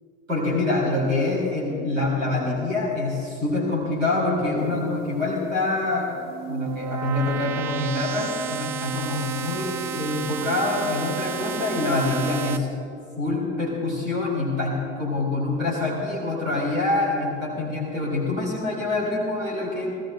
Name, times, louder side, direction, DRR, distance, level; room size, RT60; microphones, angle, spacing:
voice 1, 0.3-6.1 6.5-12.7 13.2-19.9, left 2 dB, 90° right, -3 dB, 3.3 m, -25 dB
sound 1, 6.1-12.6, right 8 dB, 45° right, 0.9 m, -32 dB
17.5 x 15.0 x 3.9 m, 2.4 s
hypercardioid pair, 70°, 38 cm